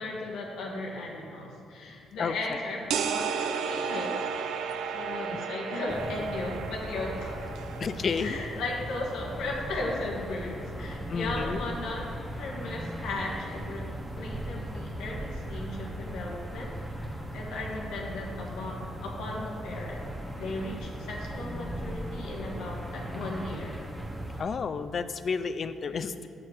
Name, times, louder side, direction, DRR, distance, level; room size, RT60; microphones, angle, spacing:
voice 1, 0.0-4.2 4.9-7.5 8.2-12.1 12.3-20.0 20.4-23.8, left 2 dB, 85° left, -2 dB, 1.3 m, -36 dB
voice 2, 2.2-2.6 5.3-5.4 7.8-8.4 11.1-11.6 24.4-26.3, left 5 dB, 45° left, 12 dB, 0.4 m, -31 dB
sound 1, 2.9-8.5, right 7 dB, 80° right, 0.4 m, -33 dB
sound 2, 5.9-24.4, right 1 dB, 10° right, 0.9 m, -38 dB
7.3 x 4.5 x 6.1 m, 2.5 s
cardioid pair, 90°, 0 cm